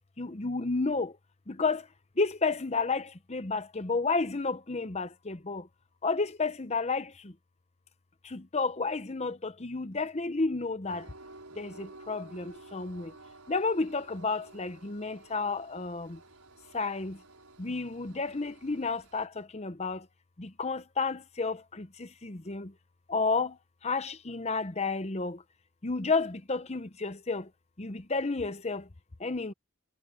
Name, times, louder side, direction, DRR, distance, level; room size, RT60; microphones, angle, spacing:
voice 1, 0.2-1.1 1.5-1.8 2.2-5.7 6.0-7.3 8.2-11.0 11.6-13.1 13.5-16.2 16.7-17.2 17.6-20.0 20.4-22.7 23.1-23.6 23.8-25.4 25.8-27.5 27.8-28.9 29.2-29.5, left 3 dB, 30° left, 0.8 m, -31 dB
Train, 10.9-19.3, right 2 dB, 85° right, 4.9 m, -52 dB
head